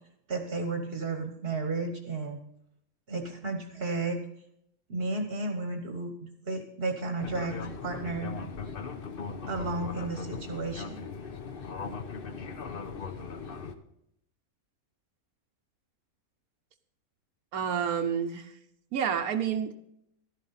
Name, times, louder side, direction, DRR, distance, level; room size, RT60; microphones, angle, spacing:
voice 1, 0.3-2.4 3.1-4.2 4.9-8.3 9.5-11.1, right 3 dB, 45° right, 6 dB, 1.3 m, -33 dB
Fixed-wing aircraft airplane, 7.2-13.7, left 5 dB, 45° left, 0.9 m, -39 dB
voice 2, 17.5-18.6 18.9-19.7, right 8 dB, 75° right, 7 dB, 1.2 m, -29 dB
12.5 x 11.0 x 4.1 m, 0.75 s
omnidirectional pair, 1.6 m